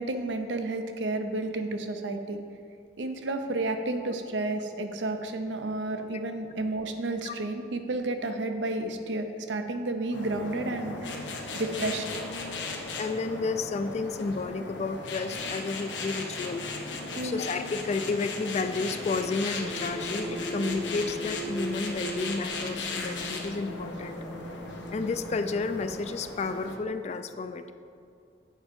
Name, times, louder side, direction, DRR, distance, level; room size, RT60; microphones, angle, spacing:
voice 1, 0.0-2.4 3.0-12.1 17.2-17.4, right 2 dB, 85° right, 6 dB, 0.7 m, -31 dB
sound 1, 10.1-26.8, left 3 dB, 90° left, 1.0 m, -37 dB
voice 2, 13.0-16.7 17.1-24.2 24.9-27.7, left 3 dB, 35° left, 10 dB, 0.3 m, -31 dB
sound 2, 19.6-26.0, right 1 dB, 60° right, 1.4 m, -38 dB
8.3 x 4.7 x 5.2 m, 2.5 s
head